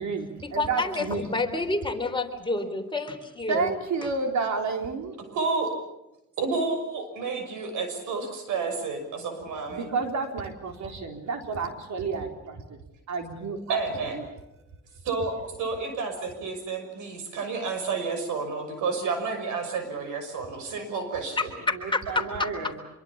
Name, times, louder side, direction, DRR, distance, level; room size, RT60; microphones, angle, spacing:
voice 1, 0.0-1.3 3.5-5.2 9.7-12.8 13.1-13.8 14.1-14.2 21.6-22.8, right 4 dB, 65° right, 4 dB, 4.0 m, -31 dB
voice 2, 0.6-3.7 21.9-22.2, left 2 dB, 15° left, 4 dB, 3.7 m, -28 dB
voice 3, 5.3-5.7 6.4-9.9 13.7-14.2 15.0-21.5, right 4 dB, 85° right, 7 dB, 6.2 m, -30 dB
26.0 x 23.0 x 7.3 m, 0.93 s
cardioid pair, 90°, 30 cm